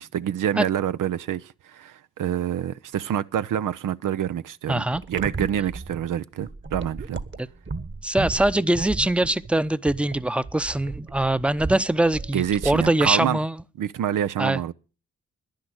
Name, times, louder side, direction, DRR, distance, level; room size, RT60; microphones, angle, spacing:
voice 1, 0.0-7.2 12.3-13.4 13.8-14.7, right 10 dB, 70° right, 0.6 m, -27 dB
voice 2, 4.7-5.0 7.4-7.5 8.0-13.6 14.4-14.6, right 1 dB, 5° right, 0.7 m, -23 dB
sound 1, 4.9-13.3, right 3 dB, 35° right, 1.5 m, -35 dB
10.5 x 10.5 x 7.9 m
supercardioid pair, 40°, 32 cm